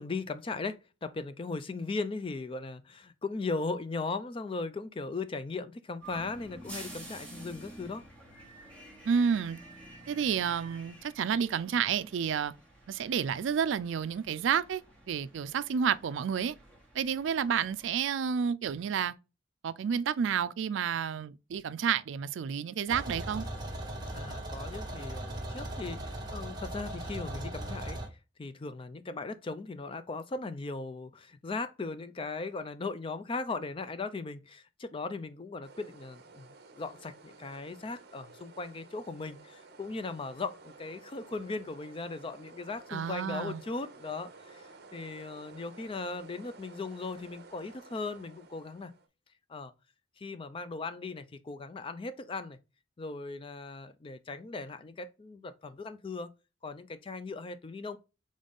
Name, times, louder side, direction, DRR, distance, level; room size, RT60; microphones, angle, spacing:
voice 1, 0.0-8.0 24.1-28.0 28.4-48.9 49.5-49.7 50.2-52.6 53.0-56.3 56.6-58.0, left 3 dB, 30° left, 0.4 m, -38 dB
sound 1, 6.0-17.9, right 2 dB, 5° left, 1.2 m, -51 dB
voice 2, 9.0-9.6 10.1-12.5 12.9-14.8 15.1-16.5 16.9-19.1 19.6-23.5 42.9-43.6, right 7 dB, 75° right, 0.3 m, -30 dB
sound 2, 22.9-28.1, right 1 dB, 20° right, 1.2 m, -38 dB
sound 3, 35.6-49.1, right 3 dB, 55° right, 0.7 m, -53 dB
3.9 x 3.6 x 3.5 m
head